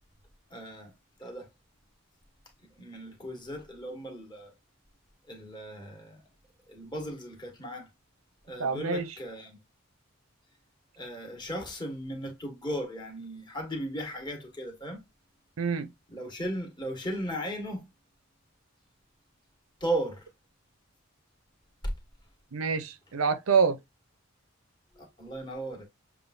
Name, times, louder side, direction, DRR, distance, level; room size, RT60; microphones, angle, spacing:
voice 1, 0.5-0.9 1.2-1.5 2.8-4.5 5.3-6.2 6.7-7.9 8.5-9.6 11.0-15.0 16.1-17.9 19.8-20.2 24.9-25.9, right 1 dB, 20° left, 1.5 m, -36 dB
voice 2, 8.6-9.1 15.6-15.9 22.5-23.8, right 5 dB, 85° right, 0.6 m, -26 dB
7.0 x 2.4 x 2.6 m
head